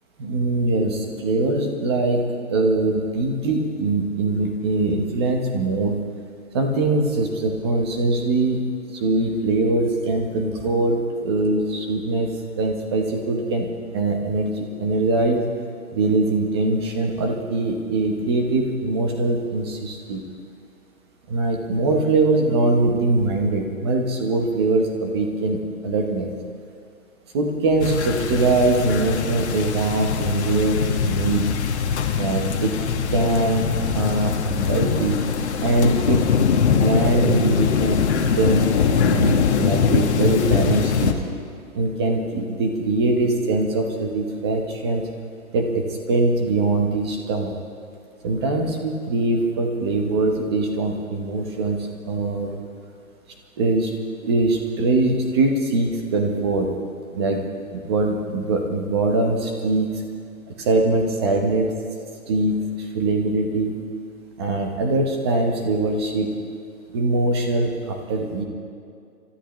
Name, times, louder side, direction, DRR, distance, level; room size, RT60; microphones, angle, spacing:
voice 1, 0.2-6.0 6.5-8.7 8.9-15.5 15.9-20.2 21.3-26.3 27.3-31.5 32.2-32.8 33.1-35.2 35.6-36.3 36.8-38.7 39.1-41.2 41.7-45.1 45.5-47.5 48.2-51.8 52.1-52.6 53.6-53.9 54.2-56.7 57.1-57.5 57.7-60.0 60.6-61.7 62.3-63.8 64.4-66.3 66.9-68.4, right 2 dB, 20° right, 3 dB, 0.9 m, -22 dB
sound 1, 27.8-41.1, left 6 dB, 50° left, 1.2 m, -22 dB
29.0 x 13.0 x 3.1 m, 2.4 s
hypercardioid pair, 170°, 43 cm